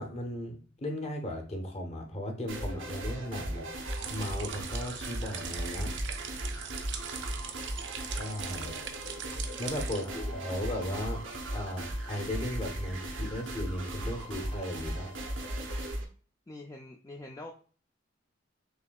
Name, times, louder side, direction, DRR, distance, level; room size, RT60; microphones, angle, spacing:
voice 1, 0.0-3.8 4.1-5.9 8.1-8.7 9.6-11.2 11.5-15.1, left 1 dB, 35° left, 2 dB, 0.9 m, -36 dB
sound 1, 2.5-16.0, right 1 dB, 85° right, 0.9 m, -37 dB
sound 2, 3.9-10.1, right 7 dB, 65° right, 0.5 m, -41 dB
sound 3, 6.9-15.9, left 4 dB, 70° left, 2.2 m, -55 dB
voice 2, 9.9-10.4 16.5-17.5, left 2 dB, 15° left, 2 dB, 0.3 m, -46 dB
6.6 x 2.7 x 2.3 m, 0.41 s
head